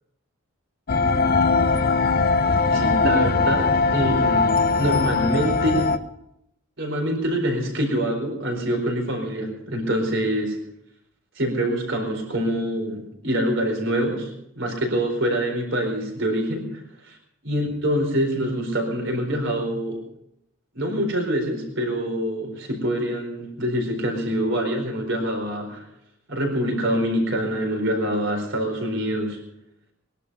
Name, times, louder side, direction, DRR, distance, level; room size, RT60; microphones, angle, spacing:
sound 1, 0.9-6.0, left 4 dB, 45° left, 0.7 m, -20 dB
voice 1, 2.7-5.9 6.8-10.6 11.4-14.3 14.6-17.2 17.4-20.0 20.7-25.8 26.3-29.4, equal, 60° right, 3 dB, 4.5 m, -25 dB
21.5 x 11.5 x 5.6 m, 0.80 s
head